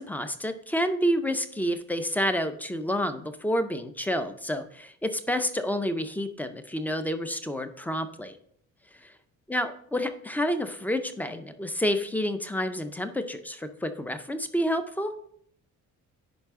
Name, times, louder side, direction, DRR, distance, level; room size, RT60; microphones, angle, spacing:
voice 1, 0.0-8.4 8.9-9.1 9.5-15.1, equal, 5° left, 9 dB, 0.4 m, -29 dB
10.0 x 4.9 x 3.5 m, 0.65 s
cardioid pair, 175°, 32 cm